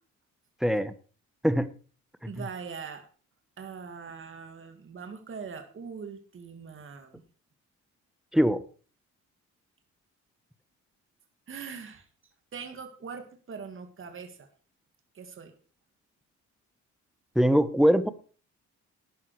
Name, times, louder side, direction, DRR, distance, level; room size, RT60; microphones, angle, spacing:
voice 1, 0.6-0.9 1.4-1.7 8.3-8.6 17.3-18.1, equal, ahead, 13 dB, 1.1 m, -22 dB
voice 2, 2.3-3.0 3.6-7.2 11.5-12.1 12.5-14.5 15.1-15.5, right 6 dB, 45° right, 6 dB, 2.1 m, -41 dB
12.0 x 9.4 x 4.8 m, 0.39 s
cardioid pair, 90°, 30 cm